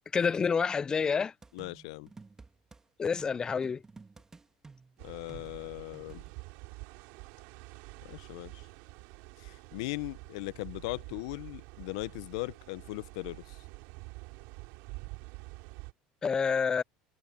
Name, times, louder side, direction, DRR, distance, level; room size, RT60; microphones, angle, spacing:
voice 1, 0.1-1.3 3.0-3.8 16.2-16.8, left 6 dB, 25° left, 0.4 m, -28 dB
sound 1, 1.4-2.8 3.2-6.3, right 4 dB, 20° right, 2.0 m, -53 dB
voice 2, 1.5-2.1 5.0-6.2 8.0-8.7 9.4-13.6, left 22 dB, 80° left, 0.9 m, -39 dB
sound 2, 5.0-15.9, right 27 dB, 75° right, 3.5 m, -47 dB
supercardioid pair, 95°, 3 cm